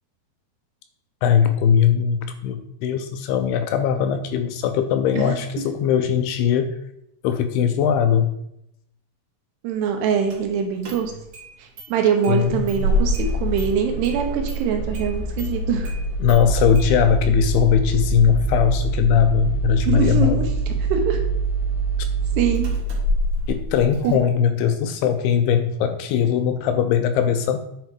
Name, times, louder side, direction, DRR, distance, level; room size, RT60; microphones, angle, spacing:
voice 1, 1.2-6.8 7.2-8.4 12.3-12.7 16.2-20.5 23.5-27.6, left 8 dB, 80° left, 8 dB, 2.4 m, -20 dB
voice 2, 9.6-11.1 11.9-15.9 19.9-20.5 20.9-21.2 22.4-22.7 24.0-24.2, right 6 dB, 80° right, 4 dB, 3.2 m, -23 dB
Engine starting, 10.3-10.4 10.8-11.5 11.8-11.9 12.2-24.1, right 2 dB, 60° right, 2.9 m, -25 dB
9.3 x 4.7 x 4.8 m, 0.79 s
omnidirectional pair, 4.9 m